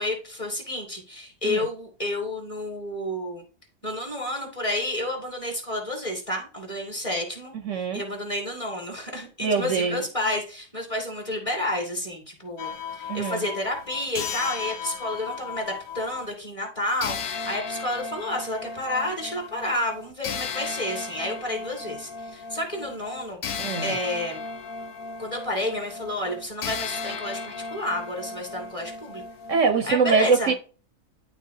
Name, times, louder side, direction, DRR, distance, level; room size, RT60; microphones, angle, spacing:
voice 1, 0.0-3.4 3.8-12.7 13.0-23.4 23.8-24.4 25.2-29.2 29.9-30.5, left 1 dB, 20° left, 2.0 m, -30 dB
voice 2, 7.6-8.0 9.4-10.0 13.1-13.4 23.6-23.9 29.5-30.5, right 5 dB, 60° right, 1.0 m, -23 dB
sound 1, 12.6-16.3 17.0-29.7, left 5 dB, 90° left, 1.3 m, -35 dB
11.5 x 3.9 x 2.7 m
omnidirectional pair, 1.5 m